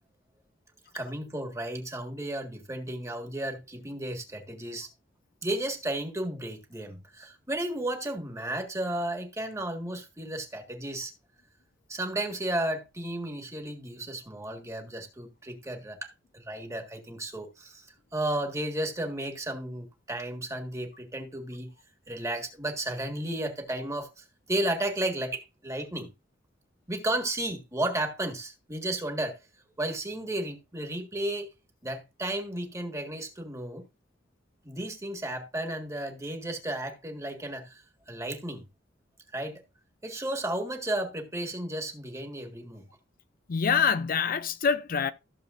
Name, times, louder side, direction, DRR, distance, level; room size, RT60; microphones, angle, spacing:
voice 1, 0.9-4.9 5.4-11.1 11.9-17.8 18.1-21.7 22.1-26.1 26.9-29.4 29.8-31.5 31.8-33.9 34.6-38.6 39.3-39.6 40.0-42.8, right 1 dB, 15° right, 1.7 m, -33 dB
voice 2, 43.5-45.1, left 6 dB, 50° left, 0.5 m, -25 dB
14.5 x 7.0 x 2.6 m
head